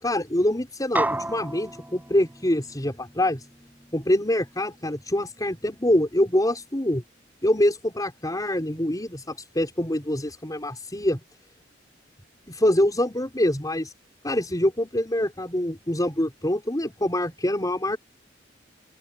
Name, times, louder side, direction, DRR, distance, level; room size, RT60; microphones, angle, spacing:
voice 1, 0.0-3.4 3.9-7.0 7.4-11.2 12.5-13.9 14.2-18.0, left 1 dB, 20° left, 6.0 m, -25 dB
sound 1, 1.0-5.6, right 1 dB, 10° right, 6.1 m, -33 dB
open air
head